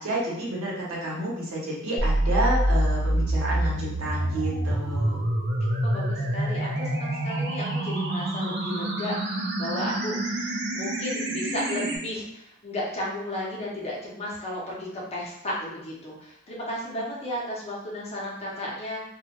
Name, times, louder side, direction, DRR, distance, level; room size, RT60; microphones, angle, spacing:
voice 1, 0.0-5.3, right 1 dB, 90° right, -4 dB, 0.9 m, -30 dB
sound 1, 2.0-12.0, right 1 dB, 50° right, 0.4 m, -27 dB
voice 2, 5.8-19.0, left 1 dB, 30° left, -4 dB, 0.6 m, -34 dB
2.2 x 2.1 x 2.9 m, 0.76 s
head